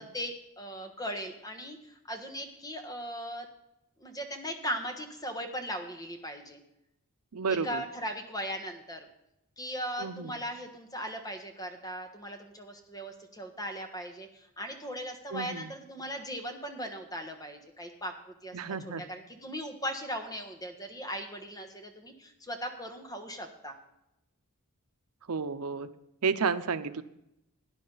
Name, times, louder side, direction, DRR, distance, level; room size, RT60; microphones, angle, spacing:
voice 1, 0.0-3.5 4.0-6.6 7.5-9.1 9.6-23.7, equal, 15° left, 4 dB, 1.4 m, -38 dB
voice 2, 7.3-7.8 10.0-10.4 15.3-15.7 18.5-19.0 25.3-25.9 26.2-27.0, right 5 dB, 90° right, 11 dB, 0.7 m, -31 dB
17.5 x 9.9 x 4.0 m, 0.85 s
head